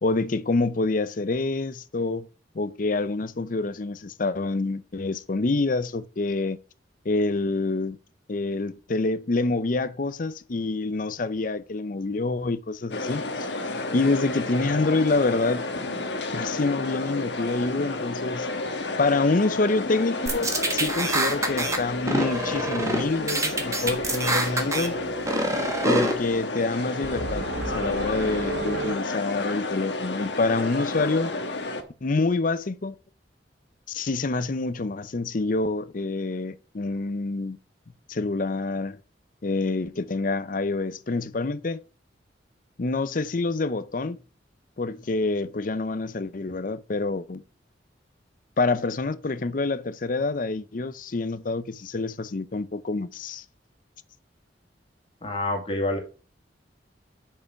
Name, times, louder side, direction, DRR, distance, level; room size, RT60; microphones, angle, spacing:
voice 1, 0.0-2.3 2.5-6.6 7.0-8.0 8.3-13.5 13.9-15.7 16.3-18.5 19.0-24.9 25.8-31.3 32.0-32.9 33.9-37.6 38.1-39.0 39.4-41.8 42.8-44.2 44.8-47.4 48.6-53.4, left 3 dB, 50° left, 0.6 m, -27 dB
sound 1, 12.9-31.8, left 2 dB, 70° left, 1.3 m, -31 dB
sound 2, 20.3-21.8 22.1-23.0 23.3-24.9 25.2-26.1, right 1 dB, 15° right, 1.4 m, -25 dB
sound 3, 23.9-29.0, right 3 dB, 85° right, 0.8 m, -35 dB
voice 2, 55.2-56.0, left 2 dB, 30° left, 2.1 m, -27 dB
6.8 x 5.6 x 5.8 m
head